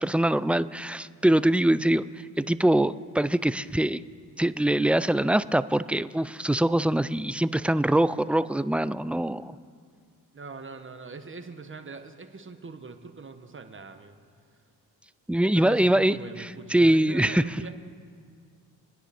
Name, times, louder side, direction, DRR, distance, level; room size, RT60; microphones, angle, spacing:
voice 1, 0.0-4.0 4.4-9.5 15.3-16.2 16.7-17.4, right 1 dB, 5° right, 15 dB, 0.4 m, -23 dB
voice 2, 10.3-14.2 15.4-17.7, right 4 dB, 30° right, 7 dB, 1.5 m, -42 dB
26.0 x 10.0 x 4.3 m, 2.1 s
supercardioid pair, 60°, 39 cm